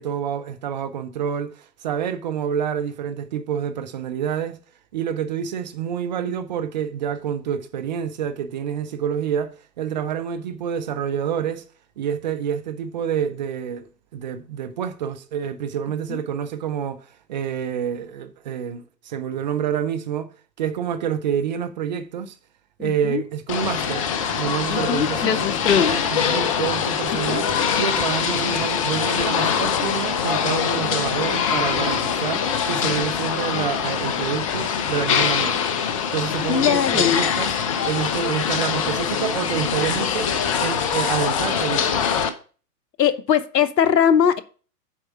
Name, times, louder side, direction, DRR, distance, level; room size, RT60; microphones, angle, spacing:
voice 1, 0.0-4.6 4.9-11.7 12.0-20.3 20.6-22.4 22.8-27.5 27.7-35.6 36.1-37.6 37.8-40.3 40.6-42.0, right 8 dB, 30° right, 0.5 m, -28 dB
voice 2, 22.8-23.2 24.7-26.0 27.3-27.4 28.3-28.5 36.5-37.3 43.0-44.4, left 8 dB, 75° left, 1.0 m, -21 dB
sound 1, 23.5-42.3, left 7 dB, 20° left, 0.5 m, -23 dB
7.2 x 4.7 x 5.6 m
hypercardioid pair, 120°, 50 cm